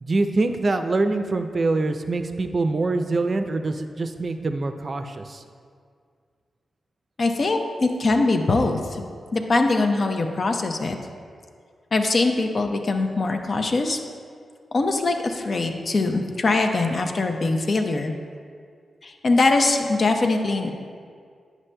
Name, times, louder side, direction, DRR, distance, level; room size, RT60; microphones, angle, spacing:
voice 1, 0.0-5.4, right 3 dB, 50° right, 7 dB, 0.4 m, -24 dB
voice 2, 7.2-9.0 9.3-11.0 11.9-14.0 14.7-18.1 19.0-20.7, left 3 dB, 55° left, 5 dB, 0.6 m, -22 dB
9.7 x 6.1 x 2.2 m, 2.1 s
cardioid pair, 50°, 0 cm